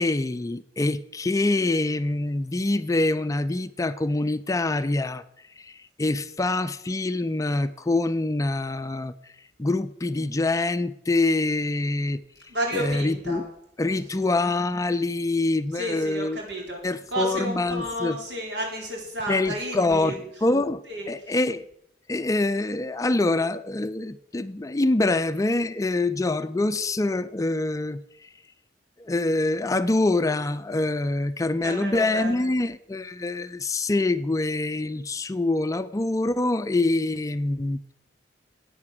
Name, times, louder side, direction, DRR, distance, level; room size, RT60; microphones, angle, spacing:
voice 1, 0.0-5.2 5.6-9.1 9.6-12.2 12.7-13.4 13.8-16.4 16.8-18.2 19.3-20.2 20.4-21.7 22.1-28.3 29.0-37.8, left 2 dB, 20° left, 12 dB, 0.4 m, -25 dB
voice 2, 12.5-13.4 14.0-14.2 15.7-20.2 20.9-21.4 31.6-32.5, right 1 dB, 80° right, 0 dB, 4.4 m, -32 dB
11.0 x 8.7 x 7.5 m, 0.77 s
head